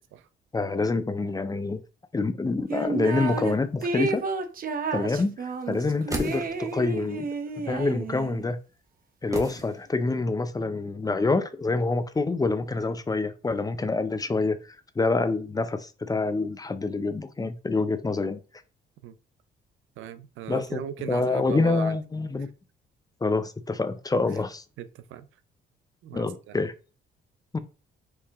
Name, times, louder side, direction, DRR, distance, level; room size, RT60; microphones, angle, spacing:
voice 1, 0.5-1.8 2.1-4.2 4.9-7.3 7.6-8.6 9.2-18.4 20.5-20.8 21.1-22.5 23.2-24.6 26.1-26.7 27.5-27.6, left 3 dB, 20° left, 0.5 m, -26 dB
sound 1, 2.7-3.5 3.8-8.5, right 4 dB, 45° right, 0.7 m, -31 dB
sound 2, 5.7-6.9 9.3-10.2 10.5-10.6, right 2 dB, 15° right, 1.2 m, -36 dB
voice 2, 20.0-22.0 24.3-24.4 24.8-25.3 26.0-26.6, right 10 dB, 80° right, 0.5 m, -37 dB
4.7 x 2.8 x 3.4 m
cardioid pair, 90°, 20 cm